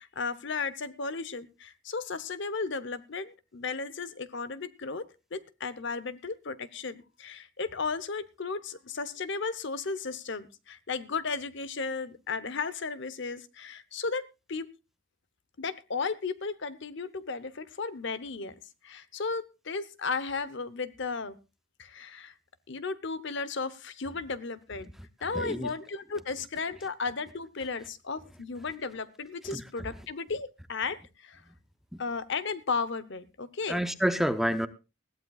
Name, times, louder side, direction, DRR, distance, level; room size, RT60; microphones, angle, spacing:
voice 1, 0.0-5.0 5.3-14.7 15.6-18.5 18.8-21.4 21.8-22.3 22.7-24.9 25.2-31.4 32.0-33.8, left 4 dB, 65° left, 0.9 m, -35 dB
voice 2, 25.3-25.7 29.5-29.6 33.7-34.7, equal, ahead, 0.7 m, -28 dB
20.5 x 14.5 x 2.4 m
head